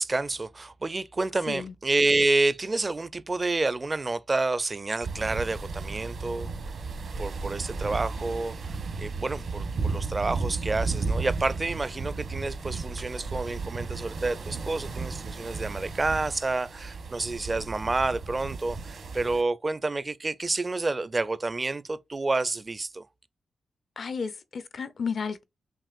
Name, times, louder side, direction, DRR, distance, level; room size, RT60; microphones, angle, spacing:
voice 1, 0.0-6.5 7.2-23.0, right 3 dB, 35° right, 0.4 m, -29 dB
sound 1, 5.0-19.4, right 4 dB, 70° right, 1.0 m, -34 dB
voice 2, 24.0-25.4, left 5 dB, 60° left, 0.5 m, -32 dB
6.0 x 2.4 x 2.4 m
cardioid pair, 60°, 0 cm